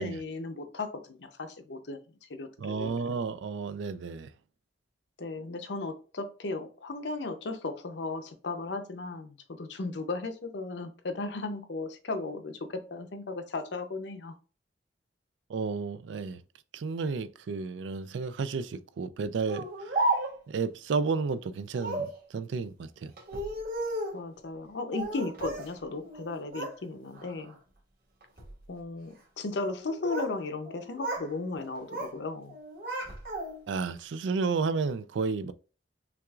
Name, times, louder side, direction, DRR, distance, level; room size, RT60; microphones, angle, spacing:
voice 1, 0.0-2.9 5.2-14.3 24.1-27.6 28.7-32.5, left 3 dB, 75° left, 0.7 m, -36 dB
voice 2, 2.6-4.3 15.5-16.4 16.7-19.7 20.5-23.1 33.7-35.5, right 4 dB, 85° right, 0.4 m, -32 dB
Speech, 19.5-20.6 21.7-22.2 23.2-24.2 24.9-25.7 26.0-26.8 27.1-27.5 28.2-28.5 29.6-30.4 30.6-31.3 31.6-32.2 32.5-33.7, right 2 dB, 55° right, 1.6 m, -33 dB
5.8 x 2.4 x 2.4 m
head